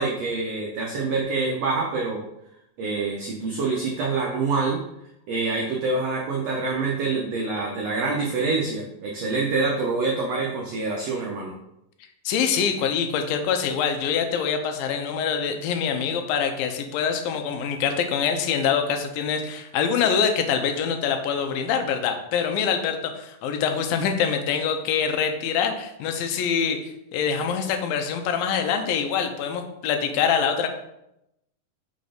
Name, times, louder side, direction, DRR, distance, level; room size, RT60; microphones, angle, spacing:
voice 1, 0.0-2.2 2.8-4.8 5.3-11.5, right 3 dB, 90° right, -1 dB, 1.4 m, -26 dB
voice 2, 12.3-30.7, left 7 dB, 85° left, 6 dB, 2.5 m, -25 dB
5.7 x 4.0 x 5.0 m, 0.83 s
omnidirectional pair, 4.0 m